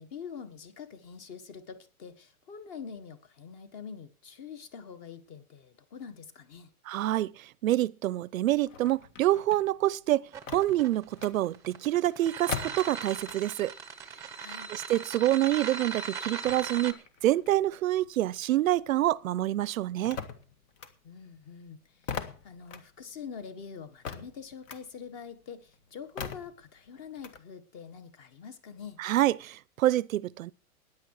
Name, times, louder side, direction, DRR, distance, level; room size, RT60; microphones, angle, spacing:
voice 1, 0.0-6.7 14.4-14.7 21.0-29.0, left 6 dB, 30° left, 1.5 m, -45 dB
voice 2, 6.9-10.2 10.5-13.7 14.7-20.2 29.0-30.5, right 14 dB, 65° right, 0.6 m, -27 dB
sound 1, 8.5-13.7 14.0-18.9 19.2-27.4, left 7 dB, 55° left, 2.0 m, -43 dB
sound 2, 10.3-16.9, right 6 dB, 5° right, 0.7 m, -39 dB
16.5 x 10.0 x 4.8 m
hypercardioid pair, 160°, 45 cm